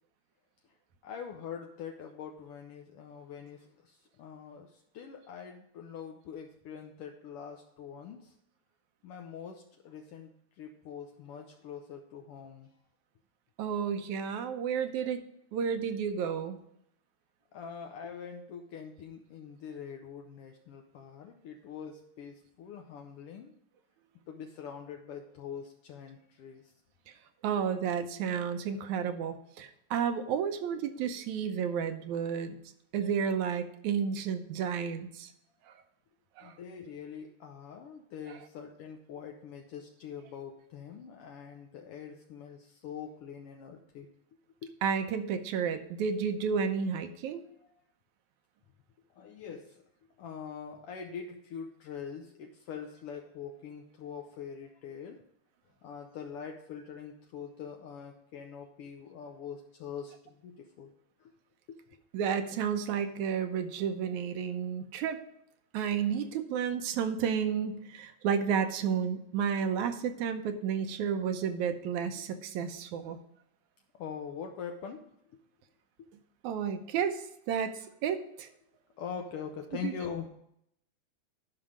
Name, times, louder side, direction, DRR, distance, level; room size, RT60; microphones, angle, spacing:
voice 1, 1.0-8.3 9.0-10.3 10.6-12.7 17.5-23.5 24.3-26.7 36.4-44.1 44.6-44.7 47.6-47.7 49.1-49.8 50.2-55.2 55.8-60.9 61.2-61.3 61.7-61.8 73.9-75.4 79.0-80.3, left 7 dB, 75° left, 3 dB, 1.3 m, -43 dB
voice 2, 13.6-15.2 15.5-16.6 27.4-32.6 32.9-35.3 35.7-35.8 36.4-36.5 44.8-47.4 62.1-65.2 65.7-73.2 76.4-78.5 79.8-79.9, right 7 dB, 80° right, 8 dB, 2.2 m, -31 dB
11.0 x 5.8 x 5.0 m, 0.74 s
omnidirectional pair, 3.4 m